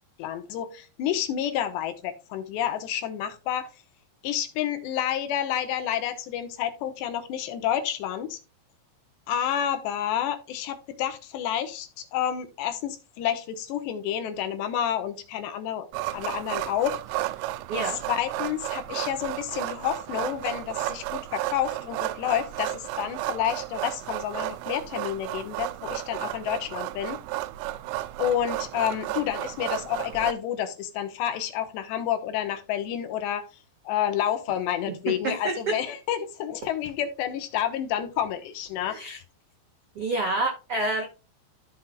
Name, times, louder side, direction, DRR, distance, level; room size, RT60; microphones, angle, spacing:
voice 1, 0.2-3.7 4.2-8.4 9.3-17.0 18.1-27.2 28.2-33.5 33.8-39.2, left 10 dB, 75° left, 3.1 m, -29 dB
sound 1, 15.9-30.3, right 16 dB, 90° right, 3.0 m, -33 dB
voice 2, 17.7-18.0 35.2-35.6 38.9-39.2 39.9-41.0, right 2 dB, 75° right, 1.3 m, -28 dB
14.5 x 5.8 x 2.2 m
omnidirectional pair, 5.3 m